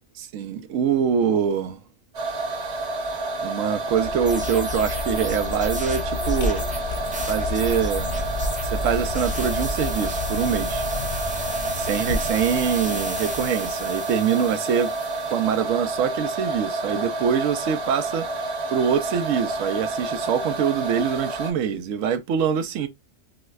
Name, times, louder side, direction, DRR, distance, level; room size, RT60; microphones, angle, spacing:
voice 1, 0.2-1.8 3.4-6.6 7.3-8.1 8.6-10.9 11.8-14.9 15.3-18.3 18.7-22.9, right 7 dB, 85° right, 1.0 m, -24 dB
sound 1, 2.1-21.5, right 2 dB, 60° right, 1.1 m, -29 dB
Vehicle, 3.8-14.2, left 2 dB, 55° left, 0.7 m, -31 dB
sound 2, 4.3-15.7, right 1 dB, 10° right, 0.3 m, -36 dB
4.8 x 2.1 x 2.2 m
omnidirectional pair, 1.3 m